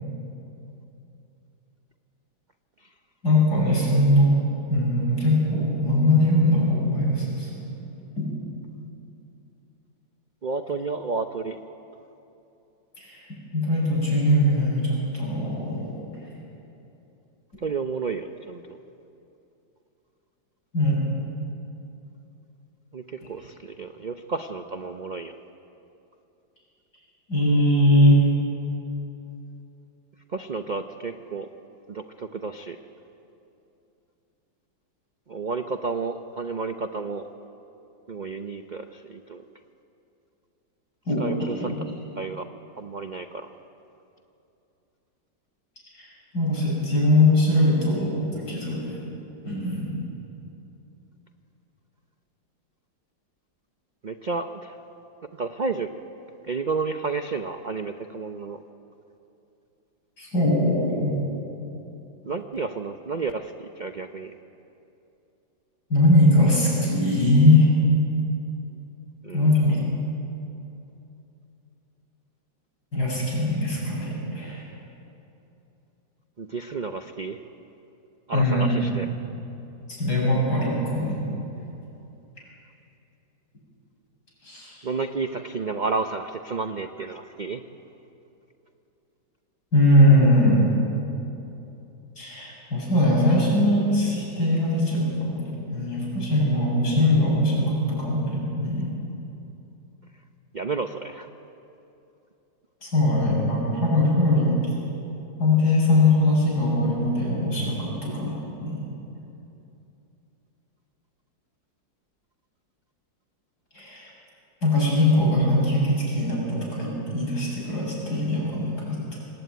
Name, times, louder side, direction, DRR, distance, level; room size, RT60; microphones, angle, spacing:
voice 1, 3.2-4.3 4.7-7.5 8.2-8.3 13.0-13.3 13.5-15.9 20.7-21.0 27.3-28.2 41.1-41.8 45.9-46.1 46.3-49.0 49.4-50.0 60.2-61.2 65.9-67.7 69.3-69.8 72.9-74.6 78.3-79.1 79.9-81.2 84.4-84.8 89.7-90.7 92.2-98.9 102.8-104.6 105.4-108.9 113.7-114.1 114.6-119.2, left 1 dB, 60° left, -3 dB, 8.3 m, -21 dB
voice 2, 10.4-11.6 17.6-18.8 22.9-25.4 30.3-31.5 31.9-32.8 35.3-37.3 38.1-39.4 41.2-41.8 42.2-42.5 42.8-43.5 54.0-54.8 55.4-55.9 56.4-58.6 62.2-64.4 69.2-69.5 76.4-77.4 78.3-79.1 84.8-87.6 100.5-101.3, right 4 dB, 60° right, 7 dB, 0.4 m, -31 dB
24.5 x 19.0 x 9.5 m, 2.9 s
omnidirectional pair, 2.0 m